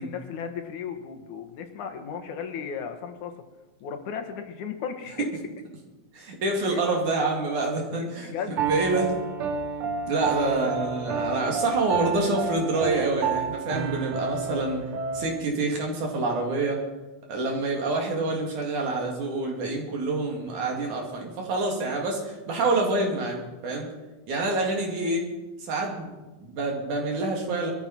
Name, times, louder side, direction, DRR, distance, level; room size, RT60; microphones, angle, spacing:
voice 1, 0.0-3.3 3.8-5.3 6.7-6.8 7.9-8.6 10.4-10.7, left 7 dB, 85° left, 6 dB, 2.9 m, -35 dB
voice 2, 6.1-9.1 10.1-14.8 15.1-16.8 17.3-23.9 24.3-25.2 25.6-27.7, right 2 dB, 85° right, 0 dB, 4.3 m, -27 dB
Piano, 8.6-15.4, right 5 dB, 60° right, 1.7 m, -30 dB
23.0 x 13.5 x 4.5 m, 1.1 s
omnidirectional pair, 3.4 m